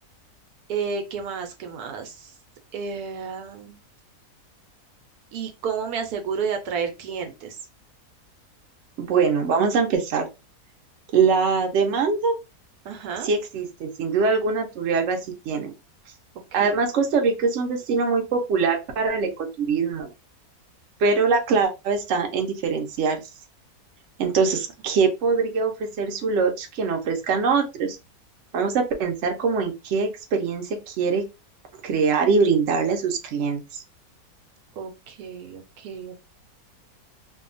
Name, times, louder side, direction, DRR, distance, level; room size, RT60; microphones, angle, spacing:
voice 1, 0.7-2.3 2.7-3.8 5.3-7.6 12.8-13.3 16.6-16.8 24.4-24.5 34.8-36.2, right 6 dB, 80° right, 5 dB, 1.1 m, -31 dB
voice 2, 9.0-10.3 11.1-12.3 13.2-15.2 15.5-15.7 16.5-20.1 21.0-23.2 24.2-28.0 28.5-31.2 31.8-33.8, right 5 dB, 60° right, 3 dB, 0.8 m, -23 dB
2.7 x 2.2 x 2.5 m, 0.25 s
omnidirectional pair, 1.6 m